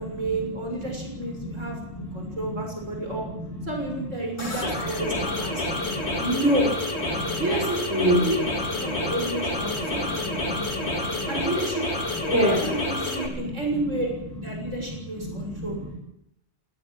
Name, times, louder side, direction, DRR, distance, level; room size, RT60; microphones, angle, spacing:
voice 1, 0.0-3.3 3.6-5.8 6.2-6.7 7.4-8.4 8.7-10.7 11.3-11.9 12.5-14.1 14.4-15.8, right 1 dB, 75° right, 2 dB, 7.0 m, -30 dB
voice 2, 1.2-2.6 3.1-3.4 4.4-4.5 4.8-4.9 5.4-6.2 7.1-7.4 7.9-8.2 8.8-9.1 9.7-11.3 12.2-12.7 13.4-13.5 14.5-14.8 15.2-15.9, equal, 10° right, -4 dB, 7.8 m, -30 dB
sound 1, 4.4-13.3, left 1 dB, 60° left, 4.3 m, -29 dB
19.5 x 19.0 x 8.8 m, 0.80 s
omnidirectional pair, 1.3 m